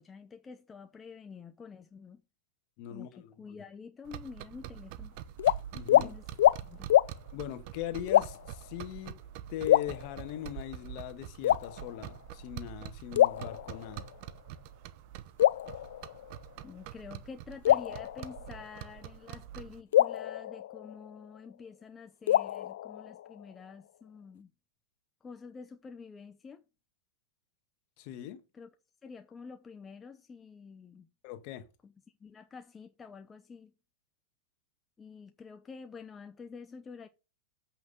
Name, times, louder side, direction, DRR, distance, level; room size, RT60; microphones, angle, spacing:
voice 1, 0.0-2.2 2.9-5.1 5.9-6.9 16.6-24.5 25.2-26.6 28.5-28.7 29.0-31.1 31.8-31.9 32.2-33.7 35.0-37.1, left 5 dB, 15° left, 0.8 m, -48 dB
voice 2, 2.8-3.3 5.7-6.1 7.3-9.1 9.5-14.1 28.0-28.4 31.2-31.7, left 12 dB, 50° left, 1.4 m, -40 dB
sound 1, 4.1-19.8, right 11 dB, 50° right, 0.8 m, -45 dB
sound 2, 5.4-5.6 5.9-6.1 6.4-6.6 6.9-7.1 8.1-8.5 9.7-10.5 11.4-12.2 13.2-14.1 15.4-16.5 17.6-18.8 19.9-21.4 22.3-23.5, left 12 dB, 75° left, 0.4 m, -26 dB
7.9 x 5.8 x 5.3 m
hypercardioid pair, 125°, 0 cm